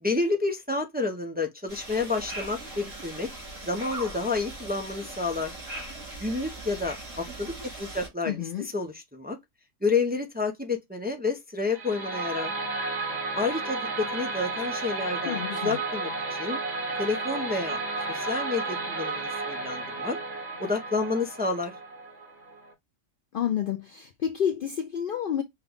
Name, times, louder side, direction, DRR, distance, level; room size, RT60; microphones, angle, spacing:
voice 1, 0.0-3.3 3.6-5.5 6.2-8.4 8.7-9.4 9.8-12.5 13.4-16.1 16.4-16.6 17.0-17.8 18.1-20.2 20.6-21.7, left 3 dB, 10° right, 0.6 m, -29 dB
sound 1, 1.7-8.1, right 2 dB, 85° right, 3.0 m, -40 dB
voice 2, 8.3-8.7 15.3-15.8 23.3-25.4, left 9 dB, 60° left, 0.6 m, -29 dB
sound 2, 11.7-22.7, right 3 dB, 65° right, 2.2 m, -33 dB
5.6 x 2.3 x 3.5 m
omnidirectional pair, 1.3 m